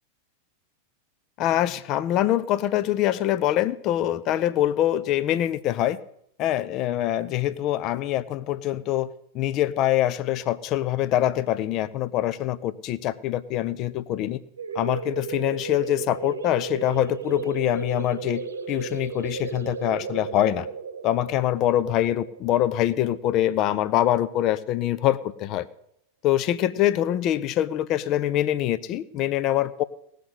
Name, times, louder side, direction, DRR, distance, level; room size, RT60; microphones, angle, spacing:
voice 1, 1.4-6.0 6.4-9.1 9.3-14.4 14.7-20.7 21.0-25.7 26.2-29.8, left 12 dB, 35° left, 17 dB, 0.6 m, -24 dB
sound 1, 14.6-23.9, right 6 dB, 70° right, 0.9 m, -35 dB
18.0 x 6.7 x 9.7 m, 0.73 s
figure-of-eight pair, 90°, 0 cm